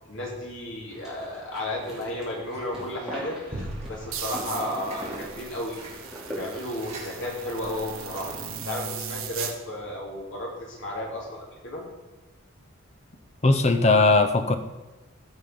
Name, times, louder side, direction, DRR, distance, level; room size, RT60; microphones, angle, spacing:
voice 1, 0.1-5.8 6.3-8.3 8.6-11.8, left 1 dB, 65° left, -2 dB, 3.0 m, -33 dB
sound 1, 0.9-7.7, right 1 dB, ahead, 3.0 m, -41 dB
sound 2, 2.5-3.1 3.5-8.6, right 1 dB, 30° right, 2.4 m, -42 dB
sound 3, 4.1-9.5, right 7 dB, 85° right, 1.3 m, -38 dB
voice 2, 13.4-14.6, left 3 dB, 30° left, 9 dB, 0.8 m, -19 dB
15.0 x 5.6 x 5.4 m, 1.1 s
head